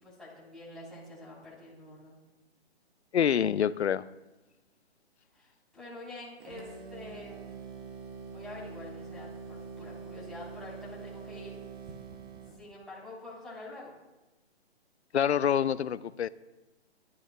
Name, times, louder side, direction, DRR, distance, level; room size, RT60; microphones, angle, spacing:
voice 1, 0.0-2.2 5.3-7.6 8.3-11.6 12.6-13.9, left 2 dB, ahead, 3.5 m, -46 dB
voice 2, 3.1-4.1 15.1-16.3, left 8 dB, 80° left, 0.6 m, -26 dB
sound 1, 6.4-12.6, right 5 dB, 25° right, 1.1 m, -44 dB
18.0 x 12.5 x 2.2 m
hypercardioid pair, 145°, 33 cm